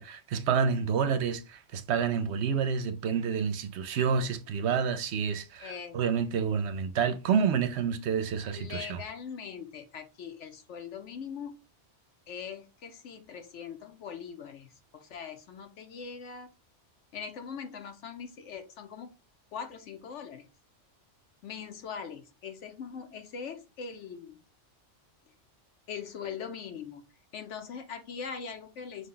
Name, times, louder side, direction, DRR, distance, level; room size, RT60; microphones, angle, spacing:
voice 1, 0.0-9.0, right 6 dB, 70° right, 0.9 m, -29 dB
voice 2, 5.6-6.0 8.5-11.6 12.3-16.5 17.1-19.1 19.5-20.5 21.4-24.4 25.9-27.1 27.3-29.1, left 6 dB, 75° left, 1.0 m, -41 dB
5.2 x 2.2 x 3.8 m
omnidirectional pair, 1.2 m